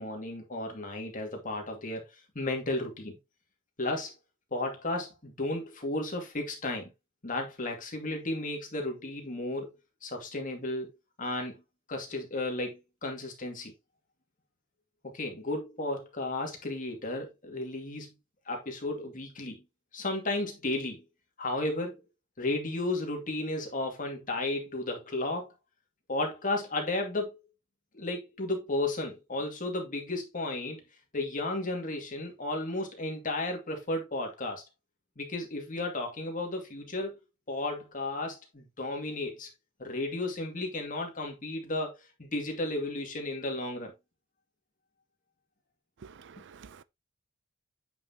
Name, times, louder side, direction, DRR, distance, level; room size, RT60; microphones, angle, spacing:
voice 1, 0.0-3.2 3.8-4.1 4.5-6.9 7.2-9.7 10.0-10.9 11.2-11.5 11.9-13.7 15.0-18.2 18.5-19.6 19.9-21.0 21.4-22.0 22.4-25.5 26.1-27.4 27.9-30.8 31.1-34.6 35.2-37.2 37.5-39.5 39.8-43.9, left 2 dB, 40° left, 2.3 m, -33 dB
voice 2, 46.0-46.8, right 5 dB, 60° right, 0.5 m, -50 dB
8.6 x 5.8 x 2.8 m
head